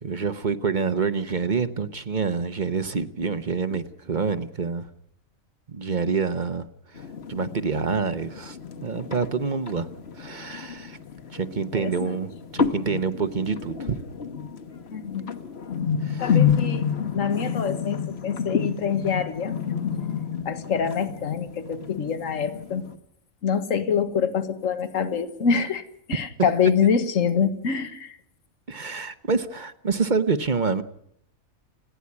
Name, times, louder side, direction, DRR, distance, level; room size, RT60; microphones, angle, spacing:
voice 1, 0.0-4.9 5.7-9.9 10.1-11.0 11.3-14.0 16.0-16.4 28.7-30.8, right 5 dB, 40° right, 12 dB, 1.0 m, -27 dB
sound 1, 7.0-23.0, left 7 dB, 50° left, 1.4 m, -30 dB
voice 2, 11.7-12.2 14.9-15.2 16.2-16.9 17.1-19.6 20.5-22.9 23.4-28.2, left 6 dB, 70° left, 10 dB, 1.7 m, -25 dB
30.0 x 10.0 x 9.7 m, 0.72 s
omnidirectional pair, 1.4 m